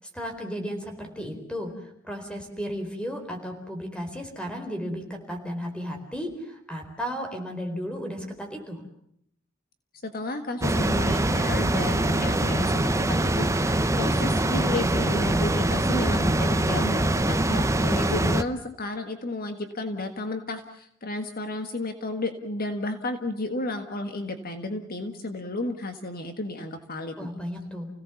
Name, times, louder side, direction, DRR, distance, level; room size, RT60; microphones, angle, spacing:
voice 1, 0.0-8.8 27.2-27.9, equal, 5° left, 4 dB, 4.2 m, -34 dB
voice 2, 10.0-12.9 13.2-27.1, left 2 dB, 45° left, 7 dB, 1.7 m, -32 dB
sound 1, 10.6-18.4, right 1 dB, 15° right, 0.9 m, -23 dB
29.5 x 17.5 x 7.1 m, 0.71 s
head